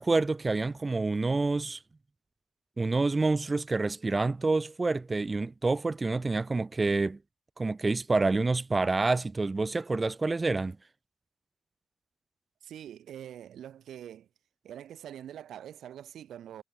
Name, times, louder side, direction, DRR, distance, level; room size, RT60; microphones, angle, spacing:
voice 1, 0.0-1.8 2.8-7.2 7.6-10.8, right 3 dB, 25° right, 1.8 m, -27 dB
voice 2, 12.6-14.3 14.6-16.6, right 10 dB, 70° right, 3.4 m, -44 dB
cardioid pair, 90°, 0 cm